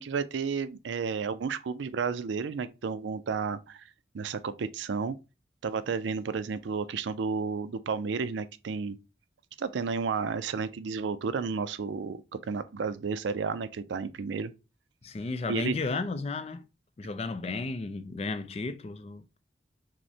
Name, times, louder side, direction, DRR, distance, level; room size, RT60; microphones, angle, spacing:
voice 1, 0.0-3.8 4.1-5.2 5.6-9.0 9.6-14.5 15.5-15.8, right 5 dB, 85° right, 0.4 m, -32 dB
voice 2, 15.0-16.7 17.0-19.4, left 3 dB, 35° left, 0.4 m, -34 dB
6.0 x 2.1 x 2.7 m
head